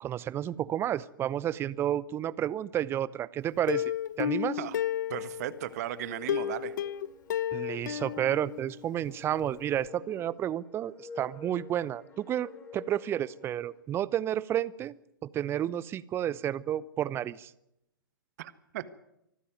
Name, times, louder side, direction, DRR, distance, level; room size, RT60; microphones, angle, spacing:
voice 1, 0.0-3.9 4.2-4.6 7.5-15.0 15.2-17.5, right 11 dB, 20° right, 21 dB, 0.8 m, -31 dB
Plucked string instrument, 3.7-5.7 6.3-9.1 9.4-9.5 9.8-9.9, left 10 dB, 55° left, 1.0 m, -32 dB
voice 2, 5.1-6.7 18.4-18.9, right 13 dB, 45° right, 15 dB, 1.5 m, -36 dB
sound 1, 5.7-13.8, left 5 dB, 20° left, 4.3 m, -49 dB
24.5 x 14.5 x 9.3 m, 0.82 s
figure-of-eight pair, 110°, 12 cm